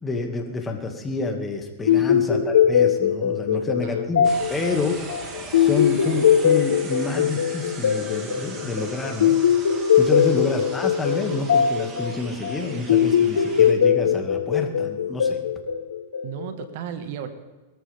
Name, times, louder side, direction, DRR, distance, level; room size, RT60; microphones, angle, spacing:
voice 1, 0.0-5.0 5.5-9.3 10.0-15.4, left 3 dB, 15° left, 3 dB, 2.2 m, -28 dB
sound 1, 1.9-16.6, left 8 dB, 90° left, 1.3 m, -21 dB
voice 2, 1.9-2.2 3.5-4.1 10.2-10.4 12.7-12.9 16.2-17.3, right 9 dB, 60° right, 8 dB, 1.8 m, -35 dB
sound 2, 4.2-13.7, right 4 dB, 25° right, 2.9 m, -40 dB
22.5 x 14.0 x 3.6 m, 1.2 s
hypercardioid pair, 125°, 0 cm